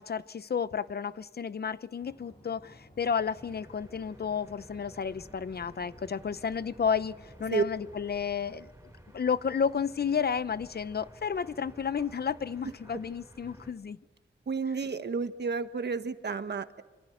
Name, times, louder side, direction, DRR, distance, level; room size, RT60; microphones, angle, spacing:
voice 1, 0.0-8.7 9.1-14.0, left 6 dB, 60° left, 15 dB, 0.8 m, -32 dB
sound 1, 2.0-8.0, equal, 30° left, 7.2 m, -56 dB
sound 2, 3.2-13.7, right 1 dB, 15° right, 7.3 m, -54 dB
voice 2, 14.5-16.8, right 5 dB, 65° right, 9 dB, 1.5 m, -31 dB
26.0 x 26.0 x 7.9 m, 1.2 s
wide cardioid pair, 85°, 19 cm